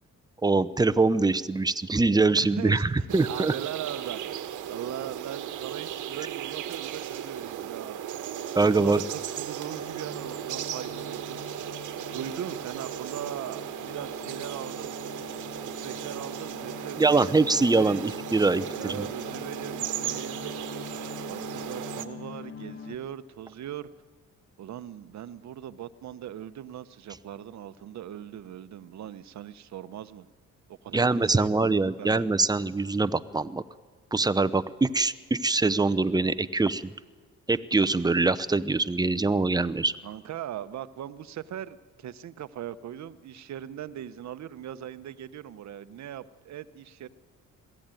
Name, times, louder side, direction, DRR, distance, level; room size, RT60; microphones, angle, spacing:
voice 1, 0.4-3.5 8.6-9.0 17.0-19.1 30.9-33.6 34.1-36.9 37.5-39.9, right 3 dB, 15° right, 13 dB, 0.8 m, -24 dB
voice 2, 2.3-8.0 8.6-11.5 12.1-15.0 15.6-18.1 18.7-23.9 24.6-30.3 30.7-32.3 40.0-47.1, right 10 dB, 65° right, 13 dB, 1.0 m, -40 dB
sound 1, 3.1-22.0, right 10 dB, 80° right, 1.4 m, -36 dB
sound 2, 8.3-23.0, left 5 dB, 45° left, 1.4 m, -44 dB
22.0 x 15.5 x 9.1 m, 1.5 s
cardioid pair, 90°, 30 cm